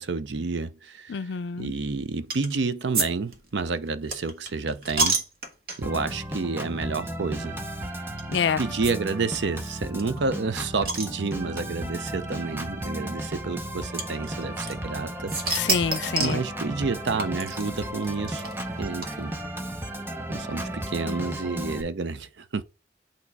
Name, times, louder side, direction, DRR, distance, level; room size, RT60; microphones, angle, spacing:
voice 1, 0.0-1.3 1.6-5.2 5.8-7.6 8.6-15.5 16.2-18.4 18.8-19.3 20.3-22.6, right 4 dB, 85° right, 0.6 m, -30 dB
voice 2, 1.1-1.7 8.3-8.6 15.5-16.4, left 6 dB, 85° left, 0.4 m, -27 dB
sound 1, 2.3-2.6 2.9-3.1 3.3-6.0 6.6-6.8 7.1-7.2 8.2-8.3 8.8-8.9 9.2-9.3 9.5-9.6 10.0-11.6 12.5-12.6 14.0-15.0 15.3-16.4 17.2-19.5, right 3 dB, 60° right, 1.5 m, -29 dB
Organ, 5.8-21.8, right 1 dB, 10° right, 0.6 m, -34 dB
8.5 x 2.9 x 4.6 m
head